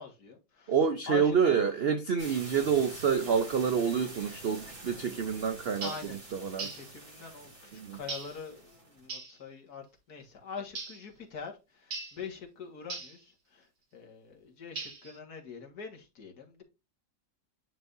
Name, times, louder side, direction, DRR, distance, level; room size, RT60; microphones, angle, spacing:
voice 1, 0.0-0.7 1.1-1.7 5.7-6.2 6.6-13.7 13.9-16.6, left 6 dB, 60° left, 2.2 m, -44 dB
voice 2, 0.7-6.7 7.7-8.0, right 6 dB, 75° right, 0.5 m, -28 dB
sound 1, 2.2-9.1, right 2 dB, 30° right, 2.5 m, -47 dB
sound 2, 5.8-6.1 6.6-6.9 8.1-8.4 9.1-9.4 10.7-11.0 11.9-12.2 12.9-13.2 14.8-15.2, right 4 dB, 90° right, 2.8 m, -39 dB
10.0 x 4.9 x 2.6 m
omnidirectional pair, 1.9 m